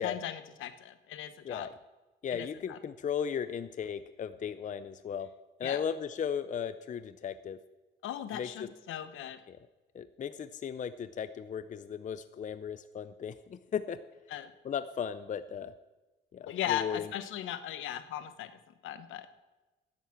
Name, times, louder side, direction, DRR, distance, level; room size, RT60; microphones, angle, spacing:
voice 1, 0.0-1.7 2.3-2.8 5.6-5.8 8.0-9.4 14.3-14.5 16.4-18.5 18.8-19.3, left 11 dB, 85° left, 12 dB, 0.9 m, -37 dB
voice 2, 2.2-5.3 5.6-7.6 8.3-8.7 9.5-9.6 9.9-14.0 14.6-15.7 16.3-17.1, left 7 dB, 40° left, 13 dB, 0.5 m, -36 dB
10.5 x 8.1 x 7.6 m, 1.1 s
cardioid pair, 90°, 20 cm